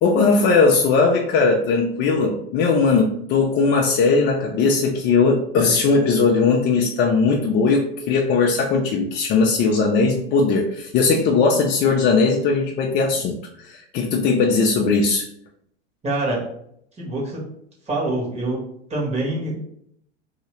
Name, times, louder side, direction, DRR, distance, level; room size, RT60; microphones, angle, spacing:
voice 1, 0.0-15.3, left 4 dB, 35° left, 0 dB, 0.5 m, -19 dB
voice 2, 16.0-16.4 17.0-17.5 17.9-18.6 18.9-19.5, right 2 dB, 20° right, -3 dB, 1.3 m, -25 dB
2.8 x 2.8 x 3.1 m, 0.71 s
hypercardioid pair, 100°, 31 cm